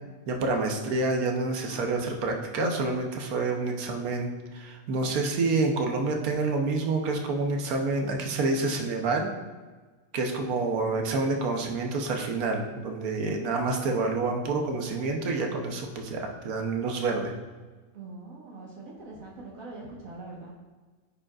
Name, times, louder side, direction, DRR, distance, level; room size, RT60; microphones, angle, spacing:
voice 1, 0.3-9.3 10.1-17.3, right 3 dB, 90° right, 3 dB, 1.3 m, -28 dB
voice 2, 17.9-20.5, right 2 dB, 70° right, -4 dB, 1.6 m, -43 dB
9.9 x 5.1 x 2.4 m, 1.3 s
omnidirectional pair, 1.5 m